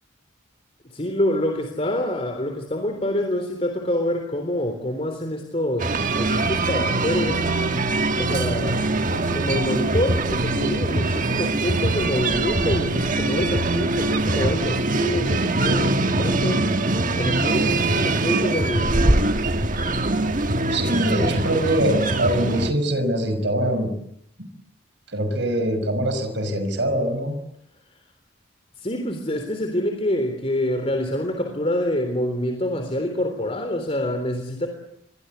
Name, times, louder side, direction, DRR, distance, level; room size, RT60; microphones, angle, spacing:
voice 1, 0.8-5.9 6.2-7.4 8.2-16.7 17.2-19.4 28.8-34.7, left 1 dB, 30° left, 5 dB, 3.6 m, -26 dB
sound 1, 5.8-22.7, right 2 dB, 40° right, 1.5 m, -22 dB
voice 2, 20.7-23.9 24.4-24.5 25.1-27.4, right 1 dB, 60° right, 8 dB, 5.8 m, -23 dB
29.0 x 24.0 x 8.3 m, 0.76 s
head